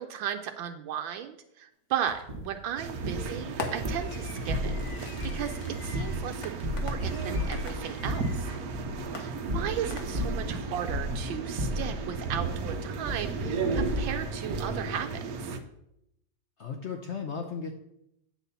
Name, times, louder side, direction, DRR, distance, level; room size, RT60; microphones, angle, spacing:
voice 1, 0.0-8.5 9.2-15.6, right 9 dB, 85° right, 6 dB, 1.4 m, -36 dB
Fireworks, 2.1-2.5 3.6-8.6 9.1-10.5, left 5 dB, 55° left, 1.3 m, -43 dB
sound 1, 2.3-2.5 3.0-3.3 3.8-4.0 4.5-4.9 5.2-5.5 5.9-7.0 7.3-8.3 8.7-9.0 9.5-10.5 10.9-11.3 11.6-12.6 13.1-13.4 13.7-14.2 14.5-14.8, left 1 dB, 30° right, 1.0 m, -33 dB
sound 2, 2.8-15.6, right 4 dB, 60° right, 1.0 m, -35 dB
voice 2, 16.6-17.7, left 5 dB, 80° left, 4 dB, 0.6 m, -36 dB
8.8 x 4.1 x 6.7 m, 0.80 s
omnidirectional pair, 2.1 m